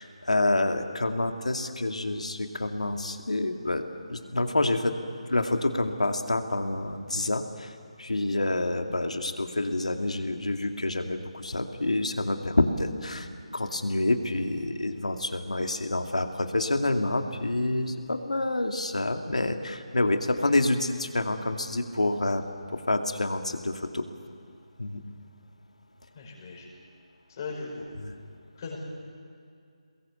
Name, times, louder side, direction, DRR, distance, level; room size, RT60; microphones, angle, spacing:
voice 1, 0.0-3.8 4.1-5.0 5.3-7.7 8.0-13.3 13.5-22.4 22.7-24.0 24.8-25.0 28.0-28.2, left 2 dB, 90° left, 5 dB, 2.3 m, -28 dB
voice 2, 26.1-26.7 27.3-27.8 28.6-28.8, left 4 dB, 35° left, -3 dB, 5.6 m, -38 dB
23.5 x 21.0 x 8.5 m, 2.3 s
figure-of-eight pair, 160°, 4 cm